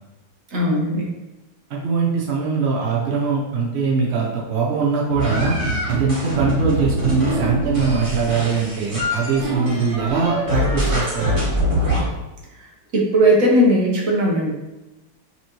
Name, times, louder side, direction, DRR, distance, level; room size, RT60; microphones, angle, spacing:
voice 1, 0.5-1.1 12.9-14.5, equal, 50° right, -2 dB, 1.1 m, -17 dB
voice 2, 1.7-5.6 5.9-11.4, right 5 dB, 65° right, -3 dB, 0.6 m, -22 dB
sound 1, 5.1-12.0, equal, 20° right, 1.3 m, -23 dB
5.8 x 2.9 x 2.9 m, 1.0 s
omnidirectional pair, 2.2 m